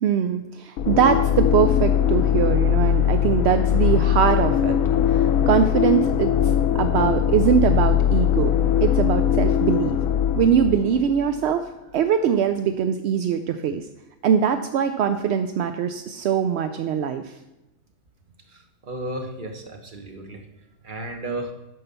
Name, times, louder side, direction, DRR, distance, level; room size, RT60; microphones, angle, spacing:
voice 1, 0.0-4.8 5.1-6.3 6.7-8.5 8.8-10.0 10.3-11.7 11.9-13.9 14.2-17.3, right 8 dB, 65° right, 8 dB, 0.7 m, -22 dB
sound 1, 0.8-11.5, left 9 dB, 75° left, 1.0 m, -21 dB
voice 2, 18.5-20.5 20.8-21.5, right 1 dB, 35° right, 4 dB, 1.3 m, -34 dB
9.3 x 5.6 x 6.9 m, 0.96 s
omnidirectional pair, 1.5 m